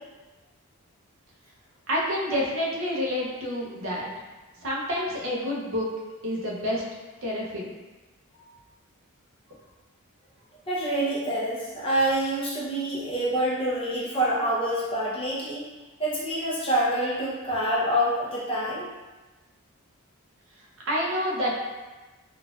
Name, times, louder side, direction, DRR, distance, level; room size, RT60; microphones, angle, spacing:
voice 1, 1.9-4.1 4.6-5.9 6.2-6.8 7.2-7.7 20.8-21.5, equal, 60° right, -4 dB, 0.6 m, -28 dB
voice 2, 10.7-15.7 16.0-18.9, right 1 dB, 25° left, -7 dB, 0.6 m, -26 dB
4.0 x 2.4 x 2.4 m, 1.2 s
head